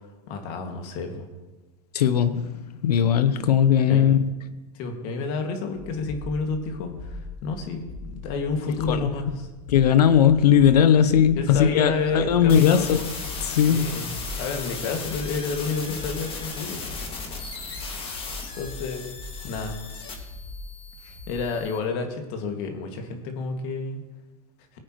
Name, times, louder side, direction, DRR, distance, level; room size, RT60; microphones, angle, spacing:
voice 1, 0.3-1.3 3.9-4.0 4.8-9.5 11.4-12.9 13.7-14.1 14.4-17.1 18.5-19.1 19.4-19.8 21.0-24.0, left 4 dB, 55° left, 4 dB, 2.2 m, -30 dB
voice 2, 1.9-4.3 8.9-9.1 9.7-13.1 13.4-14.1, left 9 dB, 85° left, 12 dB, 0.9 m, -19 dB
sound 1, 5.8-21.6, left 2 dB, 60° right, 2.5 m, -40 dB
sound 2, 12.5-21.8, left 4 dB, 30° left, 2.2 m, -37 dB
19.0 x 8.9 x 3.2 m, 1.2 s
hypercardioid pair, 110°, 20 cm